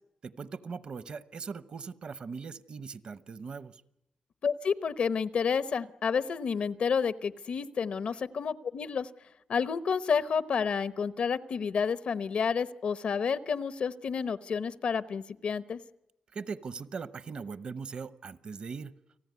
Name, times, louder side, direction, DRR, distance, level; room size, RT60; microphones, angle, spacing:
voice 1, 0.2-3.8 16.3-18.9, right 5 dB, 50° right, 14 dB, 0.9 m, -40 dB
voice 2, 4.4-9.1 9.5-15.8, left 6 dB, 65° left, 13 dB, 0.9 m, -30 dB
30.0 x 19.0 x 9.5 m, 0.88 s
wide cardioid pair, 145°, 2 cm